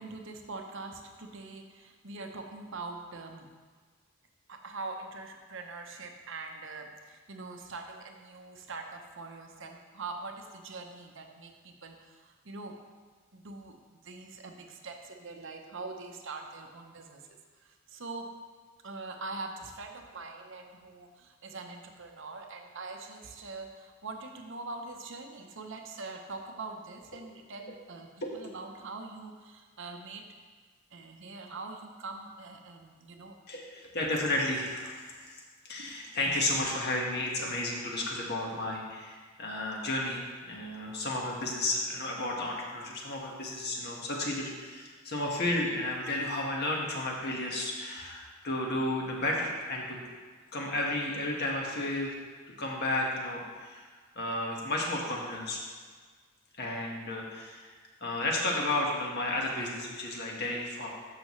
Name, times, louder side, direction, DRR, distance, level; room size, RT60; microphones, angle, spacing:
voice 1, 0.0-3.5 4.5-12.8 13.3-17.2 17.6-18.3 18.8-30.3 30.9-33.3 35.8-36.0, right 3 dB, 60° right, 3 dB, 0.8 m, -43 dB
voice 2, 33.5-50.0 50.5-52.1 52.6-53.9 54.1-55.6 56.6-57.7 58.0-60.9, left 1 dB, 50° left, -1 dB, 1.6 m, -32 dB
13.0 x 5.9 x 3.2 m, 1.5 s
head